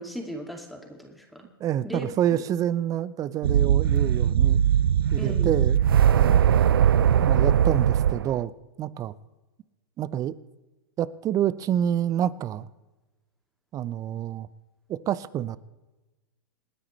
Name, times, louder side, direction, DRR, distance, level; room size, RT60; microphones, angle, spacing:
voice 1, 0.0-1.5 1.8-2.1 5.2-5.6, equal, ahead, 1 dB, 2.3 m, -36 dB
voice 2, 1.6-4.6 5.1-5.8 6.1-6.4 7.2-8.5 8.8-9.1 10.0-10.3 11.0-12.7 13.7-14.5 14.9-15.6, right 10 dB, 30° right, 18 dB, 0.7 m, -27 dB
sound 1, 3.4-8.4, right 9 dB, 80° right, 0.4 m, -20 dB
28.0 x 9.8 x 3.2 m, 1.1 s
hypercardioid pair, 105°, 12 cm